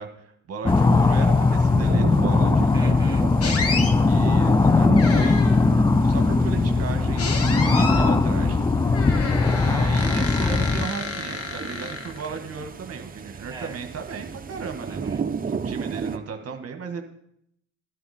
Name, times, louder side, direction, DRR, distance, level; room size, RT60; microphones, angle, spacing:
voice 1, 0.0-3.0 4.0-5.4 5.7-9.0 9.6-17.0, right 6 dB, 50° right, 5 dB, 1.5 m, -36 dB
sound 1, 0.6-10.9, left 3 dB, 15° left, 0.4 m, -19 dB
sound 2, 0.7-16.2, right 5 dB, 30° right, 0.9 m, -34 dB
voice 2, 2.7-3.9 9.4-9.9 13.5-13.8 14.9-15.3, right 3 dB, 10° right, 0 dB, 1.9 m, -40 dB
sound 3, 3.4-3.9 5.0-5.7 7.2-8.2 8.9-12.4, left 4 dB, 50° left, 1.6 m, -31 dB
13.5 x 11.0 x 4.3 m, 0.74 s
cardioid pair, 90°, 30 cm